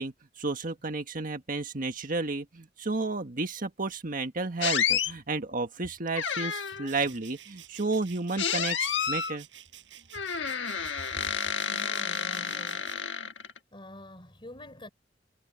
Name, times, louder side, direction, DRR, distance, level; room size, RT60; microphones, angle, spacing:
voice 1, 0.0-9.5, right 3 dB, 50° right, 1.6 m, -32 dB
sound 1, 4.6-5.1 6.2-6.9 8.4-9.4 10.1-13.6, left 7 dB, 85° left, 1.4 m, -30 dB
sound 2, 6.8-12.9, right 11 dB, 80° right, 5.1 m, -51 dB
voice 2, 11.6-12.9 13.7-14.9, left 1 dB, 30° left, 4.2 m, -47 dB
head